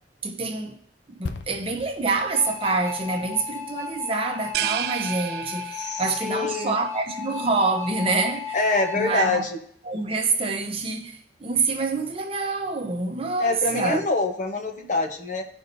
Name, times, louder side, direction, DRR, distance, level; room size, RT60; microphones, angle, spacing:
voice 1, 0.2-0.8 1.1-8.6 8.9-9.4 9.8-14.0, right 3 dB, 30° right, 0.8 m, -26 dB
sound 1, 1.2-4.9 5.2-5.4, left 3 dB, 85° left, 0.6 m, -40 dB
sound 2, 2.1-9.3, left 7 dB, 20° left, 1.5 m, -35 dB
sound 3, 4.5-6.3, right 12 dB, 60° right, 0.3 m, -30 dB
voice 2, 5.8-6.8 8.5-9.6 13.4-15.4, left 3 dB, 45° left, 0.9 m, -25 dB
15.0 x 5.4 x 2.7 m
head